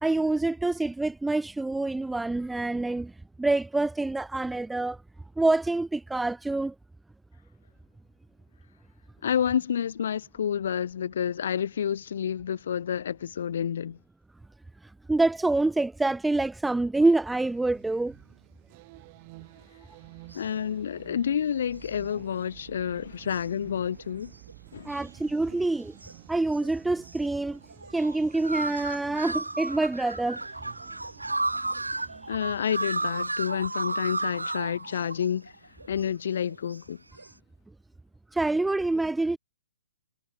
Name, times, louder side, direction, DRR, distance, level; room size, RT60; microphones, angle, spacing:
voice 1, 0.0-3.1 3.4-5.0 5.4-6.7 15.1-18.2 24.8-25.9 26.3-27.6 27.9-30.4 38.3-39.4, right 2 dB, 5° right, 1.2 m, -26 dB
voice 2, 9.2-14.0 20.3-24.3 24.7-24.9 32.3-35.5 35.9-37.0, left 8 dB, 55° left, 3.1 m, -29 dB
sound 1, 17.3-33.3, right 24 dB, 35° right, 6.5 m, -51 dB
sound 2, 20.3-20.4 21.8-21.9 23.1-23.6 24.0-25.3 25.5-26.4 26.6-26.7 27.0-27.3 27.5-35.5 35.8-36.2 36.5-36.9 37.2-37.3, right 2 dB, 80° right, 1.3 m, -33 dB
figure-of-eight pair, 125°, 0 cm